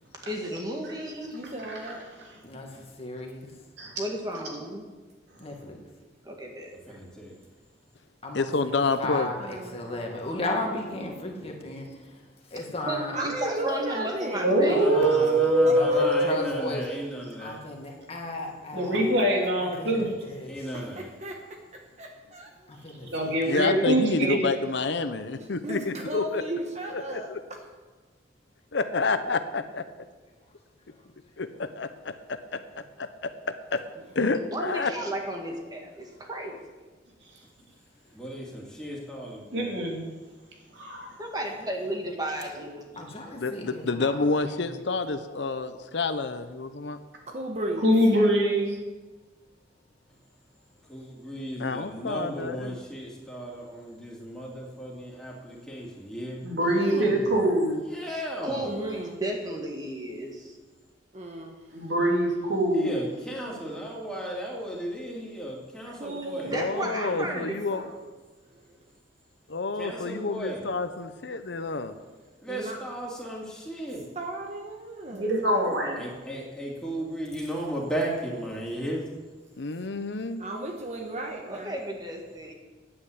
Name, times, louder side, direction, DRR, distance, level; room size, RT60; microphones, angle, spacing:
voice 1, 0.3-1.4 4.0-4.9 6.2-7.0 12.9-14.9 34.5-36.6 41.2-43.0 58.0-60.6 66.4-68.0 81.5-82.5, right 1 dB, 20° right, 1 dB, 2.0 m, -34 dB
voice 2, 1.3-2.0 9.4-10.1 13.1-15.3 15.7-16.4 18.8-18.9 20.7-22.5 25.4-27.6 42.6-42.7 47.3-47.9 58.6-59.2 61.1-61.6 65.9-66.6 67.0-67.5 72.5-72.8 74.1-75.4 80.4-81.7, right 1 dB, 40° right, 2 dB, 1.3 m, -36 dB
voice 3, 2.4-3.5 5.4-5.8 8.2-8.7 9.0-11.9 12.5-13.2 14.7-17.1 17.4-19.2 19.6-20.8 22.7-23.4 43.0-44.2 44.6-44.8 56.6-57.3, left 2 dB, 35° left, 1 dB, 2.0 m, -35 dB
voice 4, 6.9-7.4 14.8-17.6 20.5-21.1 38.1-39.7 50.9-56.5 57.9-58.6 62.7-66.5 69.8-70.6 72.4-74.0 76.0-79.1, right 1 dB, 5° left, -4 dB, 3.0 m, -35 dB
voice 5, 8.3-9.3 23.5-26.4 26.9-27.4 28.7-29.8 31.4-31.9 33.0-33.1 34.1-34.9 43.4-47.0 51.6-52.8 66.5-67.9 69.5-71.9 79.6-80.4, left 3 dB, 70° left, 10 dB, 0.8 m, -28 dB
voice 6, 14.4-16.5 18.7-20.1 23.0-24.5 39.5-40.0 40.8-41.1 47.8-48.7 56.4-57.7 61.7-63.0 75.1-76.0, right 1 dB, 70° right, -1 dB, 3.2 m, -23 dB
10.0 x 8.9 x 8.3 m, 1.3 s
head